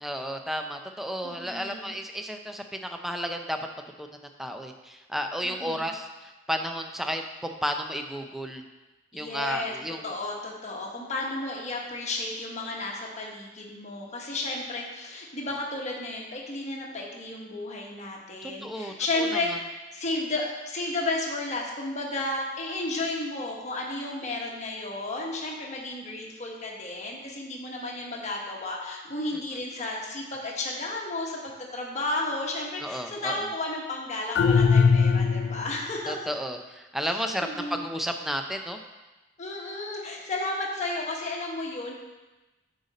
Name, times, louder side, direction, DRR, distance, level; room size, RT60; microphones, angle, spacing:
voice 1, 0.0-3.6 4.0-4.1 4.4-6.1 6.5-8.6 9.1-10.1 18.4-18.9 32.8-33.4 36.1-38.8, equal, ahead, 5 dB, 0.5 m, -32 dB
voice 2, 1.2-1.9 5.4-5.8 9.1-9.7 10.0-36.2 37.0-37.8 39.4-41.9, left 2 dB, 35° left, -1 dB, 1.2 m, -33 dB
sound 1, 34.4-35.8, left 5 dB, 60° left, 0.3 m, -20 dB
8.0 x 5.1 x 4.1 m, 1.1 s
head